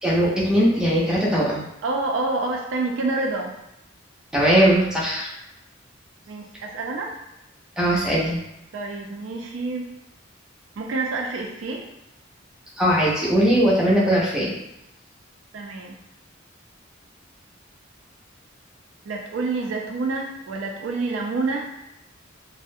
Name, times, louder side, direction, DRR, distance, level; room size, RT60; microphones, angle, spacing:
voice 1, 0.0-1.7 4.3-5.3 7.8-8.4 12.8-14.5, equal, 5° right, -7 dB, 0.5 m, -20 dB
voice 2, 1.8-3.6 6.3-7.1 8.7-9.9 10.8-11.9 15.5-16.0 19.0-21.7, right 3 dB, 70° right, 1 dB, 0.4 m, -28 dB
2.4 x 2.0 x 2.6 m, 0.86 s
head